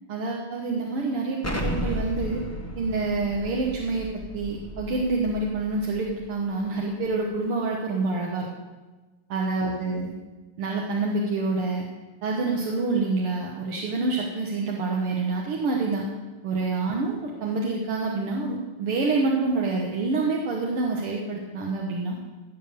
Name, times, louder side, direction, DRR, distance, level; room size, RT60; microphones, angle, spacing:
voice 1, 0.1-2.4 2.8-4.1 4.3-8.5 9.3-10.1 10.6-11.9 12.2-16.1 16.4-22.2, right 3 dB, 80° right, -1 dB, 2.1 m, -27 dB
Explosion, 1.4-6.1, left 1 dB, 15° left, 0.6 m, -34 dB
16.0 x 7.1 x 6.6 m, 1.2 s
omnidirectional pair, 2.4 m